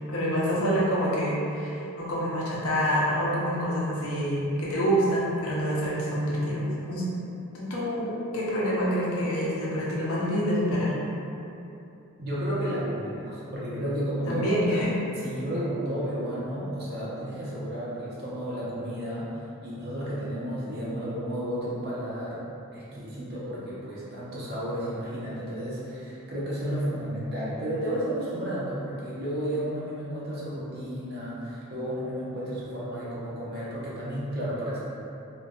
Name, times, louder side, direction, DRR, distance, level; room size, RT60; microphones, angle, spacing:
voice 1, 0.1-7.0 7.5-10.9 14.3-15.0, equal, 75° left, -6 dB, 0.6 m, -27 dB
voice 2, 12.2-14.4 15.2-22.4 22.7-34.8, equal, 50° right, -8 dB, 0.6 m, -32 dB
2.6 x 2.2 x 2.2 m, 2.8 s
head